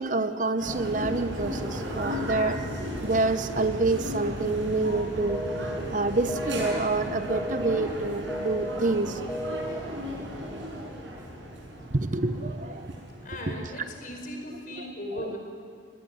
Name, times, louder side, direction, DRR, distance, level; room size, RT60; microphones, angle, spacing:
voice 1, 0.0-2.6 3.0-5.5 5.9-9.2 11.9-12.9 13.5-13.6 15.2-15.3, right 3 dB, 45° right, 10 dB, 0.9 m, -27 dB
sound 1, 0.6-14.0, equal, 85° right, 6.5 m, -35 dB
sound 2, 5.3-5.8 6.3-6.8 7.3-7.8 8.3-8.8 9.3-9.8, equal, ahead, 0.8 m, -33 dB
voice 2, 13.2-15.4, left 1 dB, 45° left, 2 dB, 5.1 m, -37 dB
24.5 x 19.0 x 9.6 m, 2.3 s
head